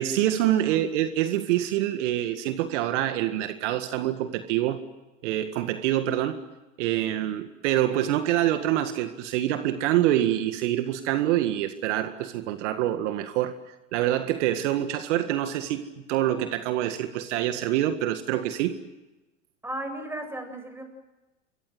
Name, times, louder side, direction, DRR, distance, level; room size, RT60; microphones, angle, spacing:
voice 1, 0.0-4.8 5.2-6.4 6.8-18.8, right 12 dB, 65° right, 9 dB, 1.9 m, -26 dB
voice 2, 19.6-20.8, right 1 dB, 5° right, 6 dB, 7.6 m, -35 dB
27.0 x 23.5 x 7.9 m, 1.1 s
hypercardioid pair, 90°, 39 cm